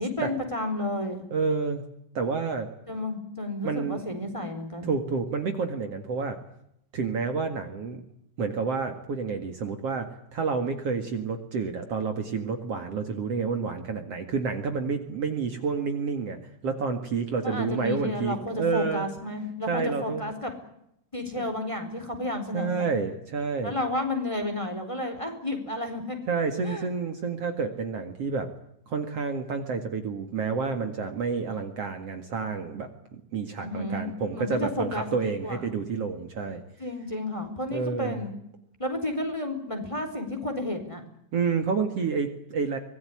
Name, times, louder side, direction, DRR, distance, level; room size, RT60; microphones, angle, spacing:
voice 1, 0.0-1.3 2.9-4.9 17.4-20.5 21.1-22.9 23.6-26.2 26.6-26.9 33.6-35.1 35.4-35.8 36.8-38.3 38.8-41.0, left 1 dB, 10° left, 5 dB, 4.0 m, -31 dB
voice 2, 1.3-1.8 2.1-2.7 3.6-4.0 4.8-6.4 6.9-8.0 8.4-19.1 19.7-20.3 21.4-21.5 22.5-23.8 26.3-28.5 28.9-36.6 37.7-38.2 41.3-42.8, right 5 dB, 55° right, 6 dB, 2.8 m, -29 dB
25.0 x 19.0 x 9.9 m, 0.77 s
omnidirectional pair, 3.6 m